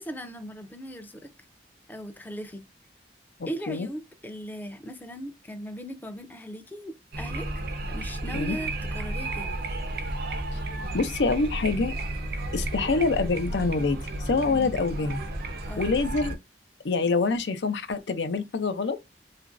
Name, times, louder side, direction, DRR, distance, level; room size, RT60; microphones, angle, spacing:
voice 1, 0.0-1.3 1.9-2.7 3.5-7.5 7.9-9.6 14.4-14.7 15.7-15.9, equal, 10° left, 0.4 m, -38 dB
voice 2, 3.4-3.9 8.3-8.6 10.5-10.6 10.9-11.9 12.5-15.2 15.8-16.4 16.8-19.0, left 4 dB, 80° left, 0.5 m, -26 dB
sound 1, 7.1-16.4, right 1 dB, 60° right, 0.5 m, -33 dB
3.0 x 2.5 x 2.5 m
head